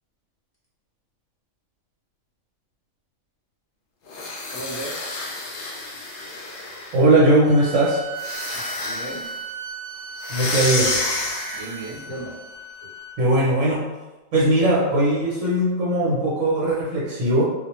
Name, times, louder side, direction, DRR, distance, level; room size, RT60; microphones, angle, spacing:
sound 1, 4.1-7.1 8.1-9.3 10.2-11.9, left 2 dB, 65° left, 0.5 m, -29 dB
voice 1, 4.5-5.0 8.7-9.2 10.3-10.6 11.5-12.3, right 2 dB, 15° left, -9 dB, 0.7 m, -35 dB
voice 2, 6.9-8.0 10.3-10.9 13.2-13.9 14.3-17.4, right 1 dB, 75° right, -7 dB, 1.1 m, -19 dB
sound 2, 7.4-13.1, right 3 dB, 55° right, 0.6 m, -36 dB
2.3 x 2.2 x 2.9 m, 1.1 s
omnidirectional pair, 1.4 m